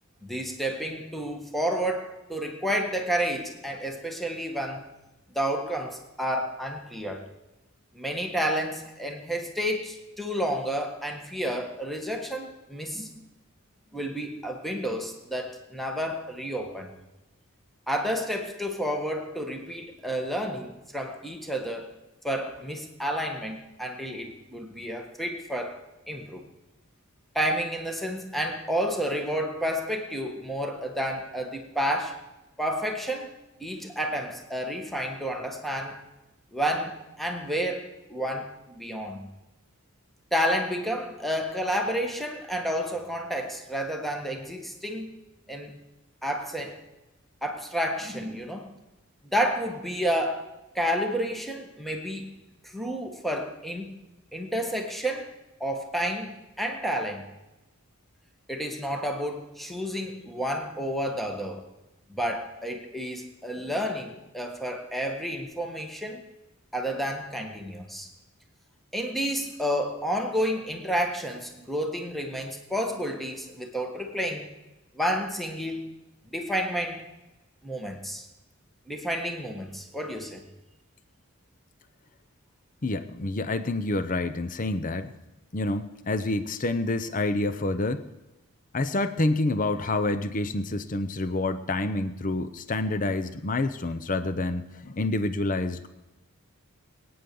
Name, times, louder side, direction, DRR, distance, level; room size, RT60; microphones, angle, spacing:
voice 1, 0.2-4.9 5.3-7.3 7.9-13.2 13.9-16.9 17.9-21.9 22.2-25.8 26.1-26.4 27.3-32.2 32.6-33.3 33.6-36.0 36.5-39.3 40.3-45.1 45.5-45.7 46.2-46.8 47.4-48.7 49.2-50.5 50.7-52.4 52.6-53.9 54.3-55.3 55.6-57.3 58.5-61.6 62.1-66.2 66.7-68.1 68.9-74.5 74.9-75.9 76.3-77.0 77.6-78.3 78.9-80.4, equal, ahead, 3 dB, 1.5 m, -30 dB
voice 2, 82.8-85.1 85.5-88.0 88.7-95.9, left 2 dB, 35° left, 10 dB, 0.7 m, -28 dB
21.5 x 9.5 x 6.9 m, 1.0 s
head